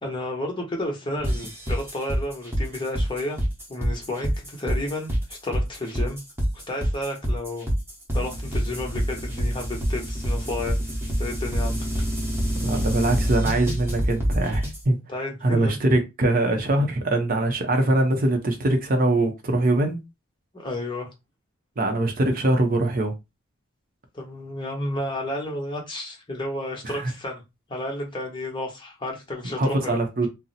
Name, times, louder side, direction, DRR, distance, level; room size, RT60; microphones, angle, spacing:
voice 1, 0.0-3.4 3.7-6.2 6.5-7.7 8.1-10.8 11.2-11.8 15.1-15.8 20.5-21.1 24.1-27.4 27.7-30.3, left 1 dB, 25° left, 0.9 m, -31 dB
sound 1, 1.2-14.8, equal, 10° right, 0.9 m, -26 dB
voice 2, 12.6-15.0 15.4-20.0 21.8-23.1 26.8-27.1 29.6-30.3, right 2 dB, 45° right, 0.6 m, -22 dB
2.6 x 2.0 x 3.9 m
head